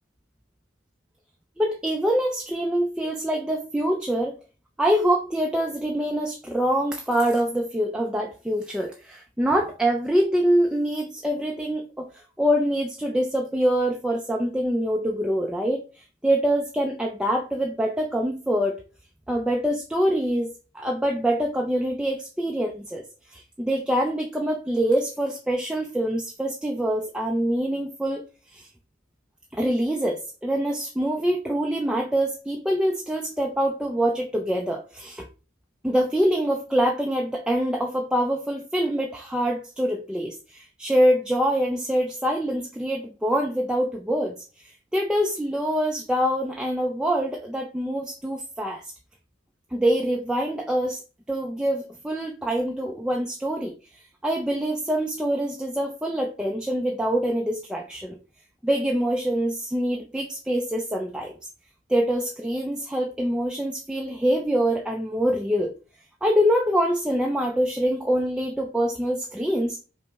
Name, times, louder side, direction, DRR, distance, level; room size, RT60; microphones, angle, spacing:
voice 1, 1.6-4.4 4.8-18.8 19.3-23.0 23.3-28.2 28.5-28.7 29.5-35.3 35.8-44.3 44.6-48.8 49.7-51.0 51.3-53.7 54.2-58.2 58.6-61.3 61.9-65.7 66.2-69.8, equal, 5° right, 1 dB, 0.3 m, -25 dB
5.3 x 2.0 x 3.4 m, 0.34 s
head